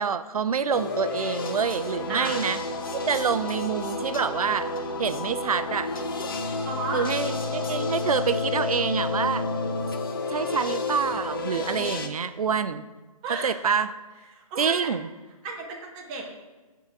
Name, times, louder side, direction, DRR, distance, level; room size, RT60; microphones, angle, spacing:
voice 1, 0.0-2.6 3.1-4.7 5.0-5.9 6.9-9.4 10.3-12.8 13.4-13.9 14.6-15.1, right 6 dB, 75° right, 12 dB, 0.5 m, -26 dB
sound 1, 0.7-12.1, left 3 dB, 40° left, 0.6 m, -30 dB
sound 2, 1.1-8.3, left 4 dB, 65° left, 0.9 m, -43 dB
voice 2, 6.6-7.0 13.2-13.5 14.3-14.9 15.4-16.2, right 4 dB, 10° right, 0 dB, 0.6 m, -33 dB
7.2 x 3.9 x 4.7 m, 1.3 s
hypercardioid pair, 155°, 19 cm